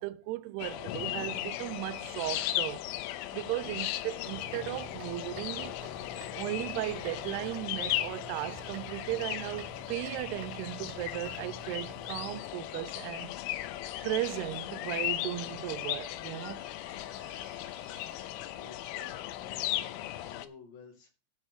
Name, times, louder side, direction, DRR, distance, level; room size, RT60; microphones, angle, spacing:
voice 1, 0.0-2.9 3.3-6.1 6.3-13.4 14.0-18.3, right 17 dB, 85° right, 2.3 m, -37 dB
sound 1, 0.6-20.5, left 14 dB, 90° left, 3.3 m, -37 dB
sound 2, 4.3-12.4, right 6 dB, 70° right, 3.0 m, -49 dB
voice 2, 18.5-19.8 20.2-21.1, left 5 dB, 65° left, 4.8 m, -52 dB
12.5 x 4.5 x 8.4 m
omnidirectional pair, 5.4 m